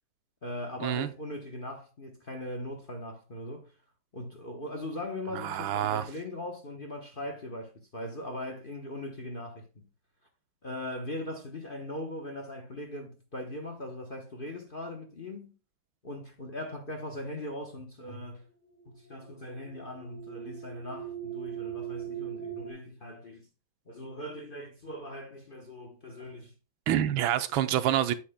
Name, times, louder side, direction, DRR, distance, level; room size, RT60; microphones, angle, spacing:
voice 1, 0.4-3.7 4.1-9.9 10.6-15.5 16.0-18.5 18.9-23.5 23.9-26.5 27.5-27.6, left 1 dB, 35° left, 0.9 m, -40 dB
voice 2, 5.3-6.1 26.9-28.1, right 11 dB, 85° right, 1.5 m, -27 dB
sound 1, 18.8-22.7, right 10 dB, 10° left, 1.6 m, -40 dB
8.6 x 8.1 x 2.2 m
omnidirectional pair, 2.2 m